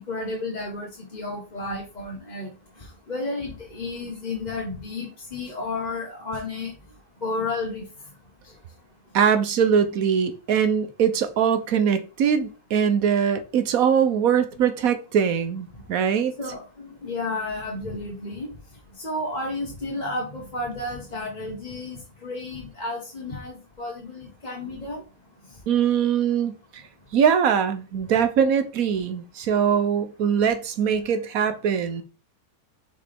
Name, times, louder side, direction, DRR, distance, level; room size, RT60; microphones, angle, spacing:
voice 1, 0.0-2.5 2.8-6.7 7.2-7.8 16.4-18.5 19.0-25.0, left 2 dB, 30° left, 1.4 m, -32 dB
voice 2, 9.1-16.3 25.7-26.5 27.1-32.0, right 7 dB, 70° right, 1.2 m, -22 dB
6.5 x 5.3 x 3.5 m
omnidirectional pair, 1.6 m